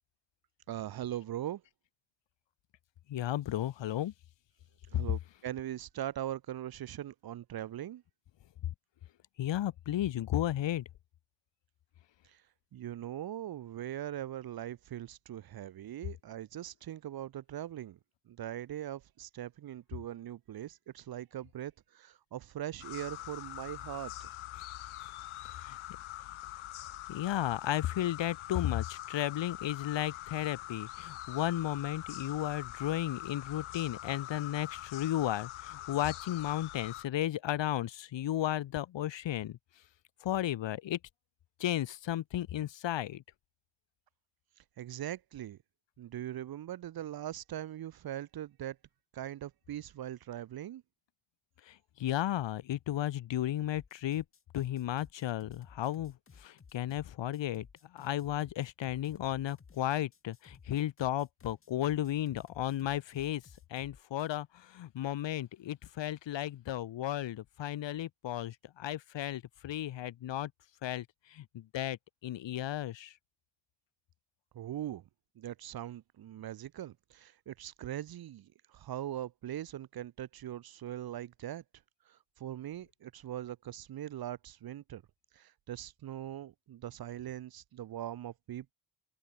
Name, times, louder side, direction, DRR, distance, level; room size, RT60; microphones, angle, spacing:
voice 1, 0.7-1.6 4.9-8.0 12.7-18.0 18.3-24.3 44.8-45.6 46.0-48.8 49.1-50.8 74.5-75.0 75.4-81.6 82.1-85.0 85.4-88.7, right 12 dB, 50° right, 0.9 m, -41 dB
voice 2, 3.1-4.1 9.4-10.8 25.4-25.8 27.1-39.6 40.2-41.0 41.6-43.2 51.7-54.2 54.5-57.7 57.9-63.4 63.7-70.5 70.8-73.1, left 12 dB, 65° left, 2.3 m, -34 dB
sound 1, 22.8-37.0, left 14 dB, 80° left, 2.4 m, -44 dB
sound 2, 53.7-64.4, left 5 dB, 25° left, 3.5 m, -58 dB
cardioid pair, 165°, 48 cm